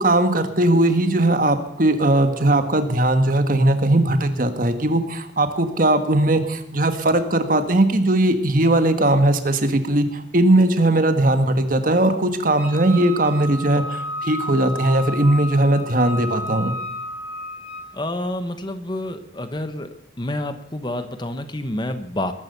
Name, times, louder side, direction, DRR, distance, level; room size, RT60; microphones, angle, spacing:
voice 1, 0.0-16.7, right 1 dB, 45° right, 8 dB, 1.4 m, -19 dB
Wind instrument woodwind instrument, 12.6-17.9, equal, 40° left, 7.0 m, -32 dB
voice 2, 17.9-19.9 20.2-22.3, left 1 dB, 25° left, 9 dB, 1.1 m, -28 dB
20.0 x 10.5 x 6.8 m, 0.73 s
head